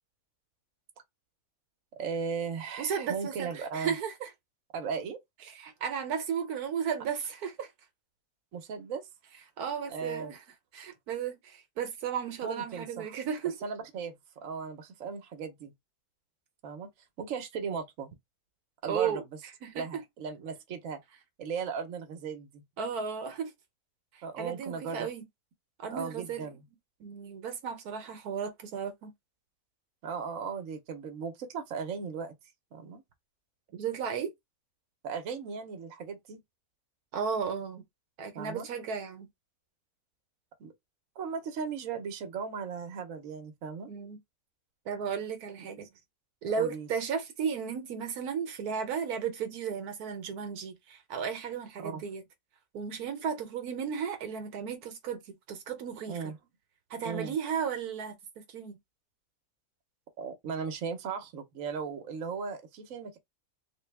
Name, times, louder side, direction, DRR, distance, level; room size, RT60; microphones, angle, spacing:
voice 1, 2.0-4.0 4.7-5.2 8.5-9.1 9.9-10.4 12.4-13.1 13.6-14.2 14.4-15.7 16.6-16.9 17.2-18.1 18.8-19.2 19.7-21.0 21.4-22.6 24.2-25.1 25.9-26.6 30.0-32.3 32.7-33.0 35.0-36.4 38.3-38.7 40.6-40.7 41.2-43.9 46.5-46.9 51.8-52.0 56.1-56.4 57.0-57.3 60.2-63.2, right 6 dB, 60° right, 1.2 m, -37 dB
voice 2, 2.8-4.3 5.5-7.7 9.6-10.4 10.7-13.6 18.9-19.2 19.6-20.0 22.8-23.5 24.1-25.3 25.8-26.5 27.0-29.1 33.7-34.3 37.1-37.8 38.2-39.3 43.9-44.2 44.9-45.9 46.4-52.2 52.7-56.2 56.9-58.1 58.5-58.8, right 7 dB, 80° right, 1.3 m, -34 dB
3.6 x 2.2 x 3.3 m
omnidirectional pair, 1.6 m